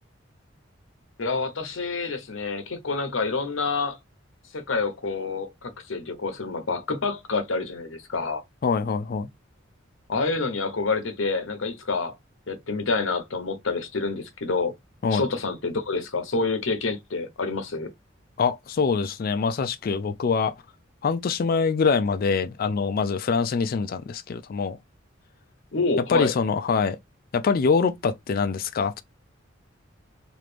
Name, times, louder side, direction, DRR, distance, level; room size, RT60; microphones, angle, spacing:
voice 1, 1.2-4.0 4.5-8.4 10.1-12.1 12.5-14.7 15.1-17.9 25.7-26.3, left 4 dB, 75° left, 0.9 m, -28 dB
voice 2, 8.6-9.3 15.0-15.2 18.4-20.5 21.0-24.8 26.1-27.0 27.3-29.0, left 5 dB, 45° left, 0.4 m, -24 dB
3.1 x 2.4 x 3.3 m
head